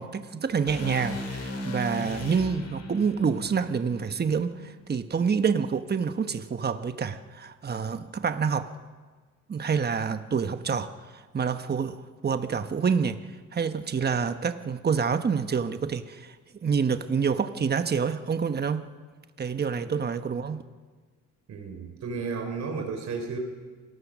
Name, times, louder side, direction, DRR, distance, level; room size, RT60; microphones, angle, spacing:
voice 1, 0.0-8.7 9.5-10.9 11.3-13.2 13.5-16.3 16.6-18.9 19.4-20.6, right 6 dB, 35° right, 9 dB, 1.2 m, -27 dB
sound 1, 0.6-4.8, left 1 dB, 55° left, 7.2 m, -37 dB
voice 2, 21.5-23.4, right 4 dB, 65° right, 4 dB, 3.8 m, -33 dB
26.5 x 19.0 x 6.3 m, 1.5 s
cardioid pair, 90°, 30 cm